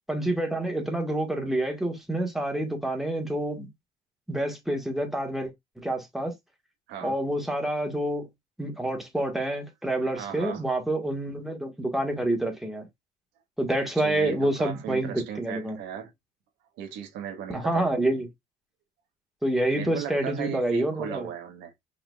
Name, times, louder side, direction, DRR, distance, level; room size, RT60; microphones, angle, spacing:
voice 1, 0.1-3.7 4.3-5.5 5.8-6.3 7.0-8.3 8.6-12.9 13.6-15.8 17.5-18.3 19.4-21.3, right 1 dB, ahead, 1.6 m, -27 dB
voice 2, 10.1-10.6 13.8-16.1 16.8-17.9 19.7-21.7, right 9 dB, 90° right, 1.4 m, -37 dB
5.9 x 3.9 x 2.3 m
cardioid pair, 110°, 17 cm